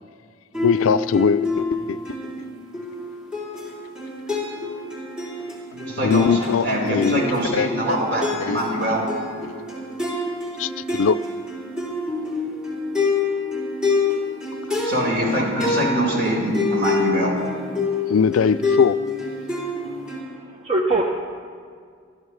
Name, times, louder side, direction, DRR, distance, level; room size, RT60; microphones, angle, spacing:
sound 1, 0.5-20.2, left 3 dB, 5° right, 3.1 m, -27 dB
voice 1, 0.6-2.0 6.0-7.2 7.5-8.0 8.5-8.6 9.4-9.6 10.6-11.2 18.1-19.0, left 6 dB, 80° left, 0.4 m, -21 dB
voice 2, 5.7-9.0 14.8-17.3, right 1 dB, 55° right, 4.8 m, -23 dB
voice 3, 19.7-21.1, right 2 dB, 30° right, 0.8 m, -25 dB
28.0 x 12.5 x 3.2 m
head